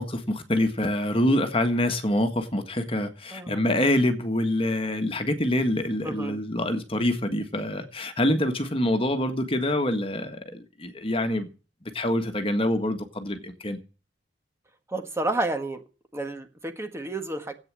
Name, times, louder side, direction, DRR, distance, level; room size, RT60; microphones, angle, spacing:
voice 1, 0.0-11.5 11.9-13.8, left 1 dB, 30° left, 1.7 m, -26 dB
voice 2, 6.0-6.4 14.9-15.8 16.1-17.5, right 2 dB, 15° right, 1.6 m, -30 dB
15.0 x 8.8 x 7.5 m
head